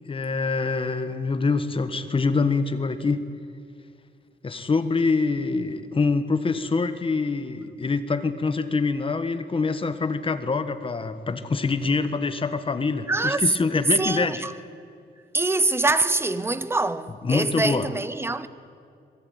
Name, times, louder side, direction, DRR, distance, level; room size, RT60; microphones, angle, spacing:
voice 1, 0.0-3.2 4.4-14.4 17.2-17.9, left 4 dB, 30° left, 1.3 m, -25 dB
voice 2, 13.1-13.5 13.9-14.5 15.3-18.5, right 2 dB, 15° right, 0.8 m, -24 dB
26.0 x 20.5 x 9.3 m
wide cardioid pair, 170°, 19 cm